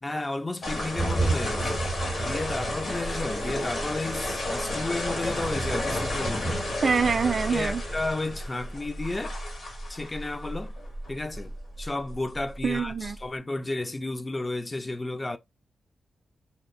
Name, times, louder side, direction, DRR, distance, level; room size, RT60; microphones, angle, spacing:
voice 1, 0.0-1.8 2.2-6.8 7.5-9.4 9.9-10.8 11.1-15.4, left 2 dB, 25° left, 0.3 m, -32 dB
sound 1, 0.6-13.2, equal, 65° left, 1.3 m, -31 dB
voice 2, 6.8-7.8 12.6-13.2, right 5 dB, 55° right, 0.3 m, -25 dB
2.7 x 2.1 x 2.5 m
cardioid pair, 55°, 0 cm